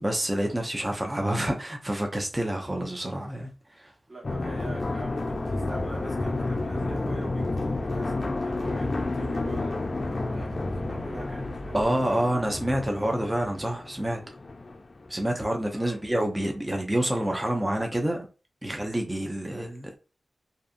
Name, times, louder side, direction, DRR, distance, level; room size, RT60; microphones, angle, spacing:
voice 1, 0.0-3.5 3.8-3.9 11.7-14.2 15.1-18.3 18.6-19.9, right 1 dB, 20° right, 0.5 m, -28 dB
voice 2, 4.1-12.4 15.7-16.0, right 2 dB, 40° right, 1.3 m, -43 dB
sound 1, 4.2-15.6 16.0-16.1, left 2 dB, 50° left, 0.3 m, -31 dB
sound 2, 5.3-11.8, right 1 dB, 85° right, 0.5 m, -42 dB
2.6 x 2.4 x 2.4 m
cardioid pair, 50°, 0 cm